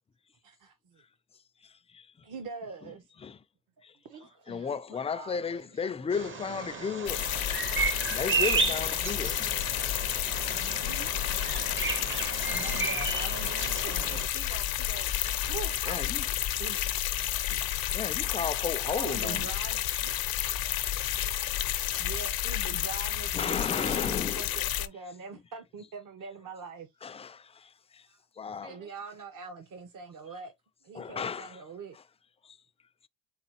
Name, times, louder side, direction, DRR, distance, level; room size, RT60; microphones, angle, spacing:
voice 1, 0.4-1.0 2.2-3.1 4.5-4.7 10.5-11.1 12.1-14.2 15.5-15.9 16.6-17.0 19.0-20.1 22.0-26.9 28.7-30.5 30.8-32.0, right 5 dB, 60° right, 0.9 m, -43 dB
voice 2, 1.6-2.3 2.8-2.9 3.2-3.4 3.8-4.0 4.5-7.6 8.1-9.9 15.8-16.3 17.5-17.6 17.9-19.5 23.3-24.5 27.0-28.1 28.4-28.8 30.9-31.6 31.9-32.0 32.4-32.6, left 6 dB, 20° left, 0.3 m, -35 dB
voice 3, 3.9-5.9 13.8-16.4 18.9-19.7 28.1-28.2 28.6-28.9 30.2-30.3, right 7 dB, 85° right, 1.2 m, -48 dB
Bird vocalization bird call bird song, 6.1-14.3, right 5 dB, 35° right, 0.7 m, -33 dB
sound 1, 7.1-24.9, left 13 dB, 75° left, 0.7 m, -31 dB
3.9 x 3.8 x 2.9 m
cardioid pair, 95°, 36 cm